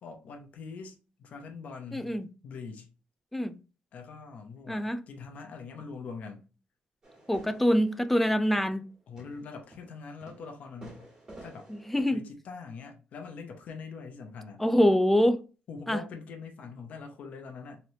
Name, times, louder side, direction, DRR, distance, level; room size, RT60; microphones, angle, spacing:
voice 1, 0.0-2.1 2.4-2.9 3.9-6.4 9.1-11.1 11.4-11.7 12.1-14.6 15.7-17.8, left 5 dB, 55° left, 0.7 m, -43 dB
voice 2, 1.9-2.3 3.3-3.5 4.7-5.0 7.3-8.8 11.9-12.2 14.6-15.4 15.9-16.0, equal, 5° left, 0.3 m, -24 dB
sound 1, 7.0-12.0, right 1 dB, 25° right, 1.5 m, -51 dB
3.2 x 2.9 x 2.7 m
cardioid pair, 155°, 3 cm